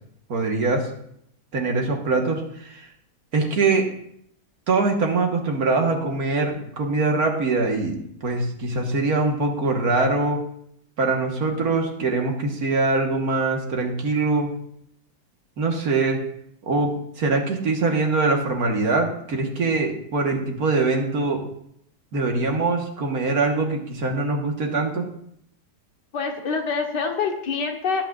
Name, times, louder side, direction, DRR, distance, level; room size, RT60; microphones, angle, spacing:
voice 1, 0.3-0.9 1.5-2.9 3.3-3.9 4.7-10.4 11.0-14.5 15.6-16.2 16.6-16.9 17.2-21.4 22.1-25.1, right 3 dB, 60° right, 2 dB, 1.9 m, -23 dB
voice 2, 26.1-28.1, left 5 dB, 75° left, 3 dB, 2.0 m, -26 dB
18.0 x 8.5 x 2.5 m, 0.70 s
omnidirectional pair, 1.8 m